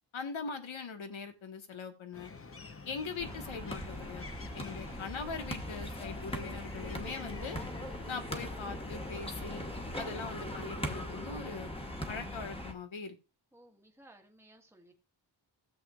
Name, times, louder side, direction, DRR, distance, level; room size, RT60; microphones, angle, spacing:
voice 1, 0.1-2.3 2.8-4.3 4.5-7.6 8.1-9.6 9.9-11.7 12.1-13.2, left 5 dB, 85° left, 7 dB, 1.5 m, -41 dB
sound 1, 2.1-10.8, left 4 dB, 30° left, 0.8 m, -49 dB
sound 2, 3.2-12.7, equal, 10° left, 1.3 m, -40 dB
sound 3, 6.7-12.5, equal, 50° left, 2.4 m, -50 dB
voice 2, 13.5-14.9, right 1 dB, 5° right, 3 dB, 1.3 m, -59 dB
16.0 x 7.5 x 2.4 m, 0.29 s
wide cardioid pair, 170°, 46 cm